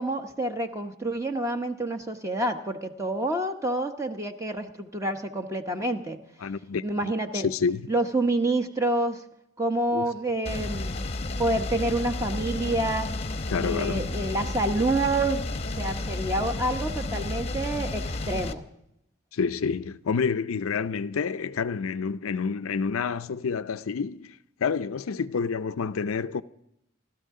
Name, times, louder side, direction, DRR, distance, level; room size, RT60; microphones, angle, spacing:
voice 1, 0.0-6.2 6.8-7.5 7.9-9.2 9.6-11.1 11.4-13.1 13.6-15.5 15.8-18.7, right 1 dB, 15° right, 0.9 m, -28 dB
voice 2, 6.4-6.8 7.3-7.9 9.9-10.1 13.5-14.1 19.3-26.4, left 5 dB, 80° left, 0.5 m, -28 dB
sound 1, 10.5-18.5, left 2 dB, 30° left, 0.8 m, -32 dB
28.5 x 13.0 x 3.7 m
head